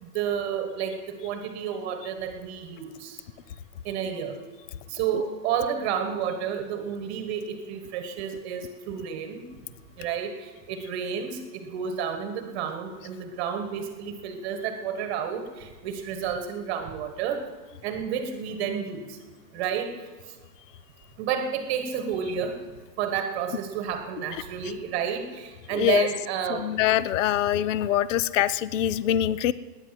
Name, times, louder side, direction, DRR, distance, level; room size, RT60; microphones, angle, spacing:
voice 1, 0.0-3.2 3.8-4.4 4.9-9.4 10.0-17.5 17.8-19.2 19.5-19.9 21.2-22.6 23.0-26.7, right 7 dB, 25° right, 7 dB, 1.3 m, -31 dB
voice 2, 25.7-26.1 26.5-29.5, left 12 dB, 50° left, 18 dB, 0.5 m, -24 dB
19.0 x 9.9 x 7.6 m, 1.4 s
supercardioid pair, 175°, 50 cm